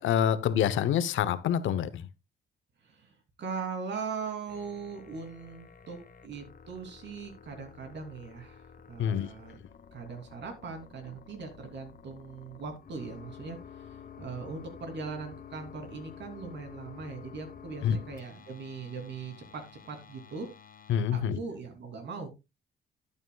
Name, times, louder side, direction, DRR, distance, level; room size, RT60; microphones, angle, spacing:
voice 1, 0.0-2.1 9.0-9.3 17.8-18.0 20.9-21.4, left 9 dB, 75° left, 0.9 m, -26 dB
voice 2, 2.8-9.6 9.9-20.5 21.1-22.3, right 5 dB, 60° right, 3.1 m, -40 dB
sound 1, 4.5-21.0, left 7 dB, 45° left, 1.2 m, -50 dB
12.5 x 8.8 x 2.3 m
cardioid pair, 90°, 20 cm